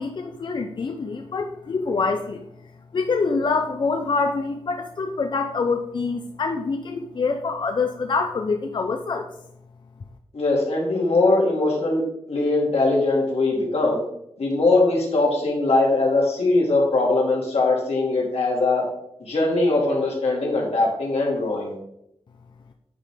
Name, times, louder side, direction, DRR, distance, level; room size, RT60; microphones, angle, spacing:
voice 1, 0.0-2.4 2.9-9.3, left 4 dB, 50° left, 4 dB, 0.6 m, -25 dB
voice 2, 10.3-12.0 12.3-14.0 14.4-18.8 19.2-21.7, left 2 dB, 85° left, -2 dB, 2.4 m, -21 dB
9.8 x 5.1 x 3.6 m, 0.79 s
wide cardioid pair, 160°, 10 cm